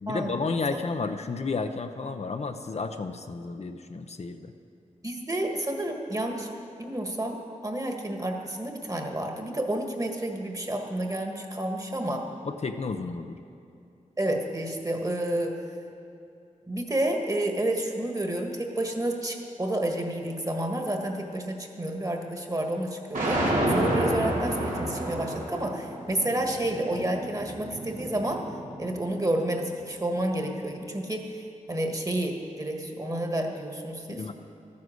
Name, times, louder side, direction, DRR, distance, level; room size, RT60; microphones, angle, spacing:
voice 1, 0.0-4.5 12.4-13.4 34.2-34.3, left 4 dB, 55° left, 7 dB, 0.6 m, -32 dB
voice 2, 5.0-6.5 6.8-7.4 7.6-12.2 14.2-15.6 16.7-28.4 28.8-31.4 31.7-34.2, right 1 dB, 25° right, 3 dB, 1.5 m, -30 dB
sound 1, 23.1-29.3, right 1 dB, 85° right, 2.5 m, -30 dB
13.0 x 9.6 x 6.4 m, 2.6 s
wide cardioid pair, 65°, 14 cm